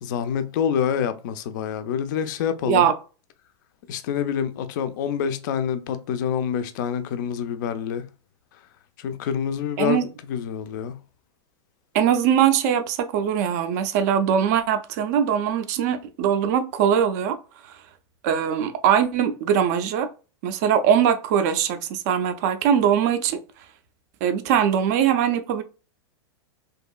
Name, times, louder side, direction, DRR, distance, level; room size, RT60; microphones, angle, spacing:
voice 1, 0.0-2.9 3.9-8.0 9.0-10.0 10.3-11.0, left 8 dB, 45° left, 0.4 m, -26 dB
voice 2, 9.8-10.1 11.9-17.4 18.2-20.1 20.4-23.4 24.2-25.6, right 8 dB, 35° right, 0.4 m, -21 dB
2.9 x 2.6 x 2.2 m
supercardioid pair, 170°, 15 cm